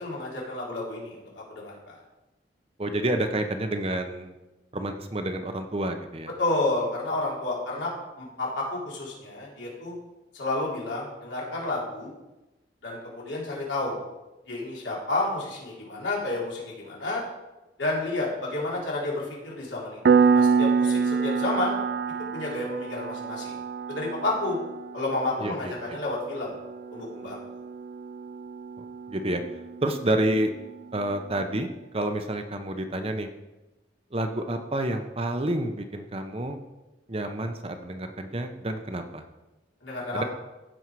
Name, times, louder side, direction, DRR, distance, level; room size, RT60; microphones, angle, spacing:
voice 1, 0.0-1.9 6.4-7.9 8.2-9.9 10.3-12.1 12.8-14.0 14.5-17.2 17.8-21.8 22.3-23.6 23.9-24.6 24.9-26.5 26.9-27.4 39.8-40.3, left 2 dB, 80° left, -5 dB, 3.6 m, -30 dB
voice 2, 2.8-4.3 4.7-6.3 25.4-26.0 29.1-29.4 29.8-30.5 30.9-31.7 31.9-33.3 34.1-36.6 37.1-39.2 40.1-40.2, right 1 dB, 30° right, 6 dB, 0.8 m, -29 dB
Piano, 20.1-30.4, right 5 dB, 55° right, 0.4 m, -27 dB
15.0 x 5.5 x 4.7 m, 1.0 s
head